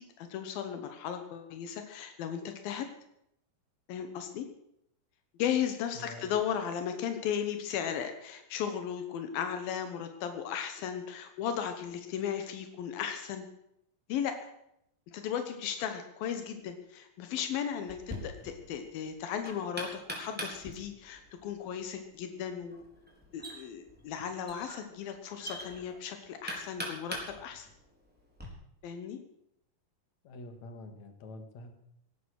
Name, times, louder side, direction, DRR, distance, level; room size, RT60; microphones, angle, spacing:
voice 1, 0.0-2.9 3.9-4.5 5.4-13.5 14.1-14.5 15.1-22.8 23.3-27.7 28.8-29.2, left 8 dB, 85° left, 7 dB, 3.0 m, -36 dB
voice 2, 5.9-6.3 30.2-31.7, left 2 dB, 55° left, 7 dB, 3.0 m, -46 dB
Knock, 17.9-28.5, equal, 5° right, 3.7 m, -44 dB
17.5 x 12.0 x 6.5 m, 0.79 s
omnidirectional pair, 4.1 m